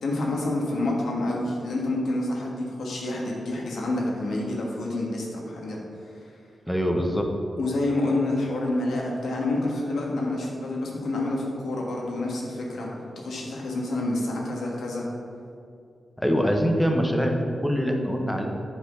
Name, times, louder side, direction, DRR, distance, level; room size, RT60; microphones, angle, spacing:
voice 1, 0.0-5.8 7.6-12.9 13.1-15.1, left 2 dB, 85° left, -2 dB, 1.5 m, -28 dB
voice 2, 6.7-7.3 16.2-18.5, equal, 5° left, 2 dB, 1.0 m, -24 dB
8.3 x 4.2 x 5.7 m, 2.5 s
cardioid pair, 75°, 0 cm